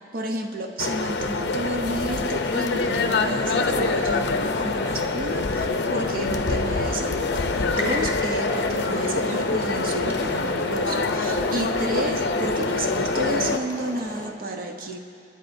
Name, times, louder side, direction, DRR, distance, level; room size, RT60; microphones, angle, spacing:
voice 1, 0.1-15.0, right 1 dB, 50° right, 4 dB, 0.8 m, -31 dB
sound 1, 0.8-13.6, left 3 dB, 65° left, 0.6 m, -25 dB
sound 2, 2.3-14.3, left 1 dB, 20° left, 0.8 m, -38 dB
sound 3, 7.6-13.1, left 1 dB, 10° right, 1.9 m, -39 dB
23.5 x 9.8 x 2.6 m, 2.6 s
head